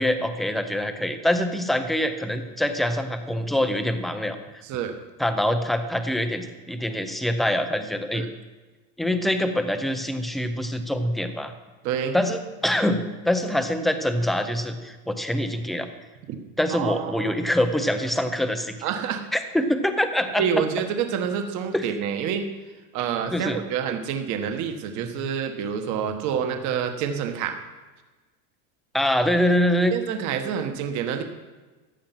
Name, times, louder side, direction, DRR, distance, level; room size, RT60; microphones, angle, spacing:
voice 1, 0.0-4.4 5.2-8.2 9.0-11.5 12.1-15.9 16.6-18.7 19.3-20.7 21.7-21.8 23.3-23.6 28.9-29.9, left 1 dB, ahead, 8 dB, 0.5 m, -24 dB
voice 2, 4.6-4.9 8.1-8.3 11.8-12.2 16.3-16.4 16.7-17.4 18.8-19.2 20.4-22.5 22.9-27.5 29.9-31.2, right 7 dB, 40° right, 6 dB, 1.4 m, -27 dB
15.0 x 10.5 x 5.9 m, 1.3 s
supercardioid pair, 155°, 45 cm